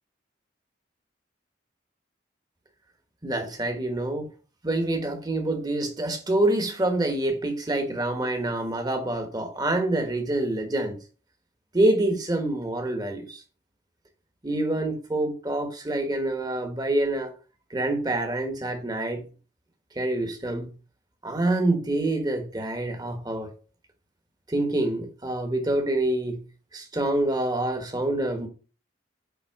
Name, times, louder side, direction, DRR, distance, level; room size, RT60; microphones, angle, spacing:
voice 1, 3.2-4.3 4.6-11.0 11.7-13.4 14.4-17.3 17.7-19.2 19.9-20.7 21.2-23.5 24.5-26.4 26.7-28.5, right 1 dB, 20° right, 1.3 m, -26 dB
8.3 x 3.6 x 4.8 m
head